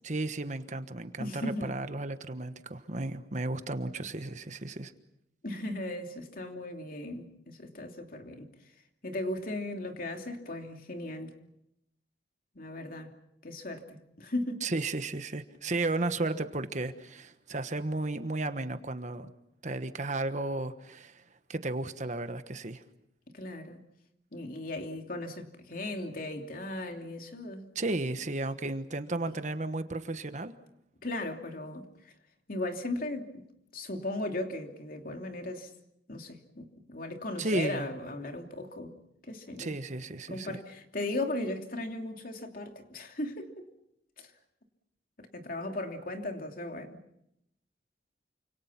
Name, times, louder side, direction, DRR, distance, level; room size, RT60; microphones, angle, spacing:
voice 1, 0.0-4.9 14.6-19.3 19.6-21.2 21.5-22.8 27.7-30.5 37.4-37.9 39.6-40.6, right 2 dB, 45° right, 1.3 m, -34 dB
voice 2, 1.2-1.7 5.4-8.5 9.0-11.3 12.5-13.1 13.4-14.6 23.3-23.8 24.3-27.6 31.0-31.9 32.5-33.4 33.7-35.7 36.1-39.0 39.2-39.7 40.3-43.6 44.2-44.3 45.2-47.0, left 1 dB, 50° left, 2.9 m, -37 dB
29.0 x 26.5 x 5.9 m
head